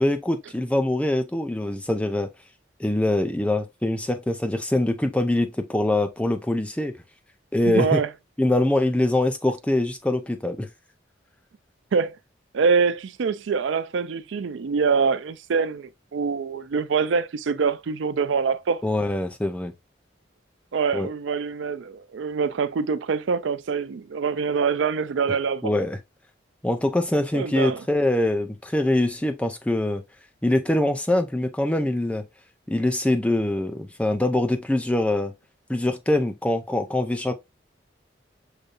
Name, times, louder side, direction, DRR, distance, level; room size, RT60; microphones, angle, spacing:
voice 1, 0.0-2.3 2.8-6.9 7.5-8.0 8.4-10.7 18.8-19.7 20.9-21.1 25.6-26.0 26.6-30.0 30.4-32.2 32.7-35.3 35.7-37.3, left 1 dB, 5° left, 0.4 m, -23 dB
voice 2, 7.6-8.1 11.9-12.2 12.5-18.8 20.7-25.7 27.3-27.8, right 5 dB, 85° right, 0.4 m, -24 dB
6.6 x 2.6 x 2.4 m
head